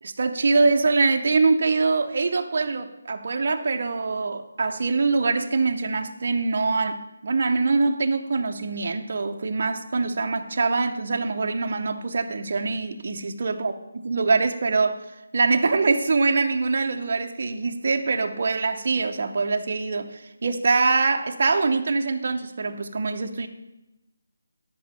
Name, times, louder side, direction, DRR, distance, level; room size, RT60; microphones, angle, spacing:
voice 1, 0.0-13.7 14.0-23.5, right 4 dB, 35° right, 4 dB, 0.6 m, -24 dB
12.5 x 5.1 x 5.5 m, 0.97 s
hypercardioid pair, 180°, 0 cm